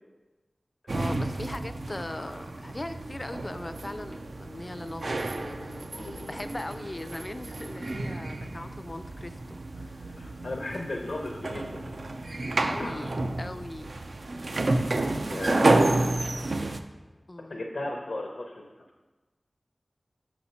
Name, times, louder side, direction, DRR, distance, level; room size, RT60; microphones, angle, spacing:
voice 1, 0.9-10.2 12.6-13.9 15.8-16.3 17.3-17.6, left 1 dB, 40° left, 10 dB, 0.4 m, -40 dB
sound 1, 0.9-16.8, right 2 dB, 75° right, 0.4 m, -30 dB
voice 2, 5.9-6.3 10.2-11.7 12.2-13.1 15.3-16.0 17.5-18.6, left 2 dB, 85° left, 0 dB, 0.7 m, -35 dB
5.6 x 4.3 x 5.5 m, 1.2 s
wide cardioid pair, 40°, 0 cm